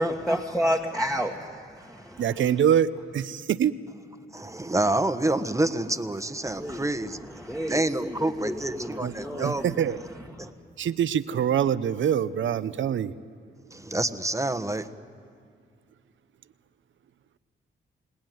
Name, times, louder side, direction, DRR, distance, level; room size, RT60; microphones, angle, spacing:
voice 1, 0.0-2.2 6.6-6.9 7.4-9.5 10.4-10.5, equal, ahead, 1.8 m, -30 dB
voice 2, 2.2-3.8 9.0-10.0 10.8-13.2, right 9 dB, 65° right, 0.9 m, -25 dB
voice 3, 4.3-9.9 10.4-10.5 13.7-14.9, right 2 dB, 15° right, 1.3 m, -28 dB
30.0 x 18.0 x 9.4 m
cardioid pair, 70°, 21 cm